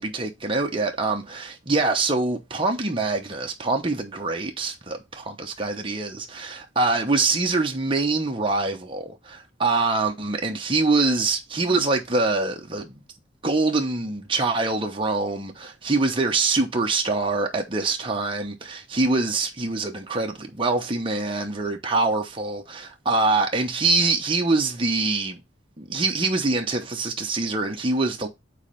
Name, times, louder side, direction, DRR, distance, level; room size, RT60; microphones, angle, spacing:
voice 1, 0.0-13.0 13.4-25.4 25.8-28.3, right 3 dB, 30° right, 0.9 m, -24 dB
4.8 x 4.2 x 5.1 m
head